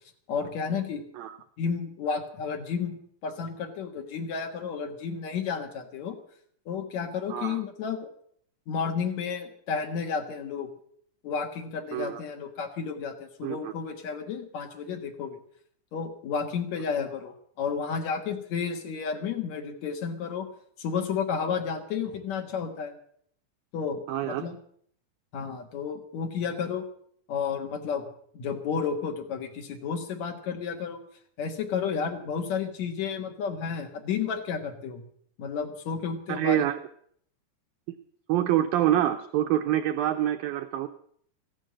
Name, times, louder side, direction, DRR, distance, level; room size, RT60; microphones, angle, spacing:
voice 1, 0.3-1.0 1.6-3.0 3.2-6.2 6.7-8.1 8.7-10.7 11.2-15.4 15.9-20.5 20.8-22.9 23.7-24.5 25.3-26.9 27.3-28.1 28.3-31.0 31.4-35.1 35.4-36.6, left 6 dB, 55° left, 4 dB, 2.1 m, -32 dB
voice 2, 7.3-7.6 11.9-12.2 13.4-13.7 24.1-24.5 36.3-36.8 37.9-38.0 38.3-40.9, right 12 dB, 85° right, 7 dB, 2.0 m, -26 dB
14.5 x 11.0 x 7.6 m, 0.62 s
omnidirectional pair, 5.0 m